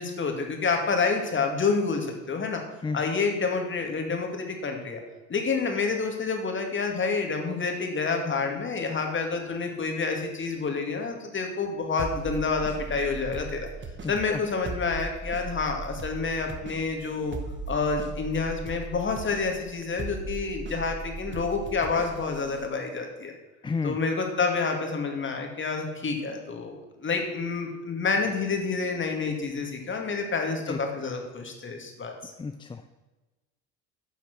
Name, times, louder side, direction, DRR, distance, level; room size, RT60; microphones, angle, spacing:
voice 1, 0.0-2.6 2.9-5.0 5.3-13.7 14.1-17.4 17.7-23.3 23.8-32.3, left 4 dB, 35° left, 3 dB, 2.3 m, -28 dB
sound 1, 12.0-22.7, right 3 dB, 30° right, 1.3 m, -38 dB
voice 2, 14.0-14.4 23.6-24.0 30.7-30.8 32.4-32.9, left 4 dB, 15° left, 9 dB, 0.4 m, -32 dB
9.9 x 5.8 x 6.2 m, 1.2 s
supercardioid pair, 80°, 36 cm